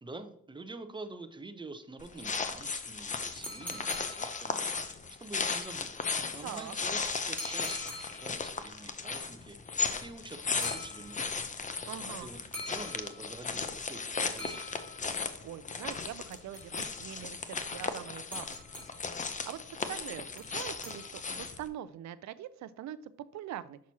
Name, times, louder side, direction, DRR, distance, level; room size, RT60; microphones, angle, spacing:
voice 1, 0.0-6.0 6.3-11.5 12.2-14.7, right 2 dB, 15° right, 8 dB, 0.7 m, -47 dB
sound 1, 2.0-21.7, left 4 dB, 25° left, 0.6 m, -36 dB
sound 2, 3.4-4.9 7.4-8.5 10.6-11.5 12.5-13.6 14.4-15.4 16.3-17.3 18.3-19.2 20.4-21.5, left 1 dB, 5° left, 2.4 m, -46 dB
voice 2, 6.4-6.8 11.8-12.3 15.4-18.6 19.2-23.8, right 11 dB, 65° right, 15 dB, 0.5 m, -43 dB
6.1 x 5.9 x 2.8 m, 0.67 s
cardioid pair, 90°, 30 cm